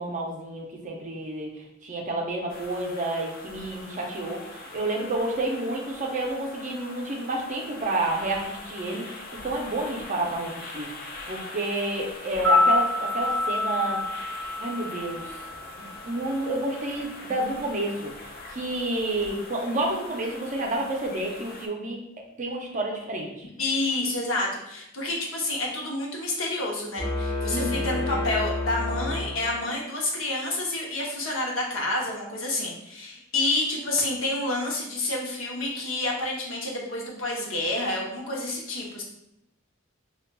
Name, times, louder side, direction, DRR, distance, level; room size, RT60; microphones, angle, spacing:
voice 1, 0.0-1.5 1.8-10.9 11.3-14.0 14.6-15.3 16.0-18.1 18.5-22.0 22.4-23.5 27.5-28.2, right 2 dB, 40° right, 0 dB, 0.5 m, -29 dB
sound 1, 2.5-21.7, left 2 dB, 45° left, 0.4 m, -42 dB
sound 2, 12.3-16.5 16.7-16.8, left 2 dB, 5° left, 0.7 m, -26 dB
voice 2, 23.6-39.0, left 2 dB, 80° left, -2 dB, 0.8 m, -29 dB
sound 3, 27.0-29.9, left 2 dB, 25° left, 1.0 m, -30 dB
3.9 x 2.3 x 2.2 m, 0.83 s
head